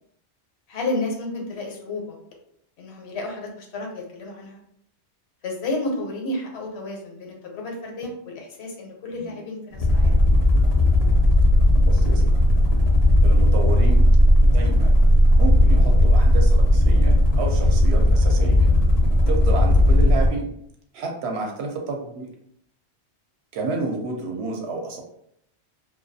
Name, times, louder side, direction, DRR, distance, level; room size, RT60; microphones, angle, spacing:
voice 1, 0.7-2.1 2.8-4.6 5.4-10.2 21.4-21.5, left 2 dB, 75° left, 0 dB, 0.9 m, -31 dB
sound 1, 9.7-20.4, left 1 dB, 45° left, 0.5 m, -16 dB
voice 2, 11.8-12.2 13.2-14.0 14.5-14.9 15.4-18.7 19.3-20.5 20.9-22.3 23.5-25.0, right 3 dB, 75° right, 2 dB, 0.8 m, -30 dB
2.3 x 2.2 x 2.6 m, 0.71 s
omnidirectional pair, 1.1 m